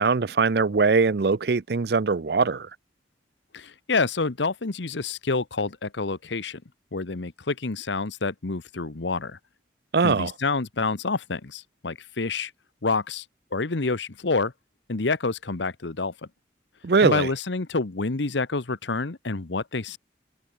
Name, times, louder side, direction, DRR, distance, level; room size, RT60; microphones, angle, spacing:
voice 1, 0.0-2.7 9.9-10.3 16.8-17.3, right 4 dB, 60° right, 0.5 m, -21 dB
voice 2, 3.5-6.6 6.9-9.4 10.0-12.5 12.8-13.2 13.5-14.5 14.9-16.1 17.0-20.0, left 3 dB, 75° left, 1.1 m, -28 dB
head